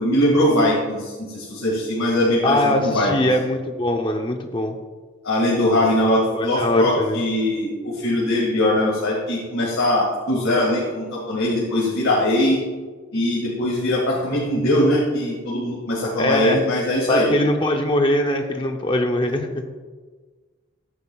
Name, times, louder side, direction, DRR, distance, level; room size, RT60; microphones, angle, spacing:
voice 1, 0.0-3.1 5.2-12.6 13.1-17.3, left 1 dB, 90° left, -4 dB, 2.0 m, -21 dB
voice 2, 2.4-4.8 6.3-7.2 16.2-16.6 17.1-19.6, left 1 dB, 25° left, 3 dB, 0.6 m, -22 dB
14.5 x 9.7 x 2.4 m, 1.4 s
head